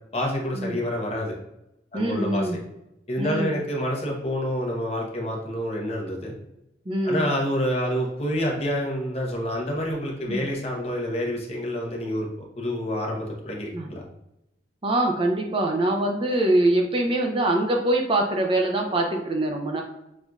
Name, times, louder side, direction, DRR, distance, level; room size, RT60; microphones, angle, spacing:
voice 1, 0.1-1.3 1.9-2.5 3.1-6.3 7.0-12.3 12.6-14.0, equal, 35° left, -1 dB, 0.8 m, -28 dB
voice 2, 1.9-2.6 3.2-3.6 6.9-7.3 10.3-10.5 13.7-13.9 14.8-19.8, right 1 dB, 30° right, 2 dB, 0.5 m, -23 dB
6.2 x 2.5 x 2.3 m, 0.87 s
head